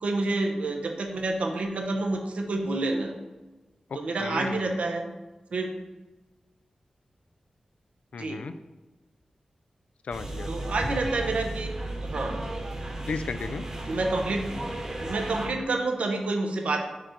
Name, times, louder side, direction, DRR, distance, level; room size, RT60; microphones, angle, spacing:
voice 1, 0.0-3.1 3.9-5.1 5.5-5.7 8.2-8.4 10.5-11.7 12.0-12.4 13.9-14.4 15.0-16.9, right 2 dB, 75° right, 3 dB, 0.7 m, -28 dB
voice 2, 3.9-4.8 8.1-8.5 10.0-11.0 13.1-13.7, left 4 dB, 80° left, 10 dB, 0.3 m, -36 dB
sound 1, 10.1-15.5, right 1 dB, 30° right, 1.1 m, -34 dB
4.9 x 4.4 x 5.1 m, 1.2 s
wide cardioid pair, 120°, 2 cm